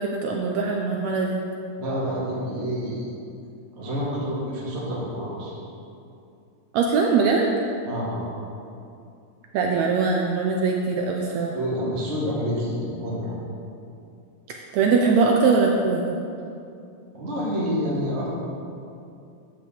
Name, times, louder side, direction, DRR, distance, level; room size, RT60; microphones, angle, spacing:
voice 1, 0.0-1.4 6.7-7.5 9.5-11.6 14.5-16.2, right 4 dB, 80° right, 1 dB, 1.6 m, -22 dB
voice 2, 1.8-3.1 3.8-5.5 7.8-8.2 11.5-13.4 17.1-18.3, equal, 25° right, -7 dB, 1.6 m, -28 dB
9.9 x 5.0 x 7.2 m, 2.6 s
omnidirectional pair, 3.8 m